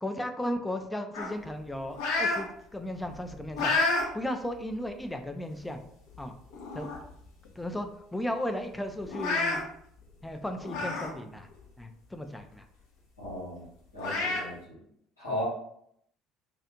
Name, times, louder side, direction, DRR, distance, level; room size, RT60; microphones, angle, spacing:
voice 1, 0.0-3.7 4.1-5.8 6.2-6.3 6.7-6.9 7.6-9.6 10.2-11.5 11.8-12.7 15.3-15.4, left 1 dB, 10° left, 6 dB, 0.3 m, -35 dB
sound 1, 1.1-2.4 2.9-4.1 4.6-4.7 5.6-5.7 6.1-6.2 6.5-7.1 7.5-7.6 7.9-8.0 9.0-9.6 10.6-11.1 11.5-11.6 13.2-13.3 14.0-14.4, left 3 dB, 65° left, 0.6 m, -29 dB
voice 2, 13.2-13.6 13.9-14.7 15.2-15.4, left 1 dB, 85° left, -9 dB, 1.3 m, -36 dB
2.4 x 2.4 x 2.8 m, 0.71 s
figure-of-eight pair, 60°, 0 cm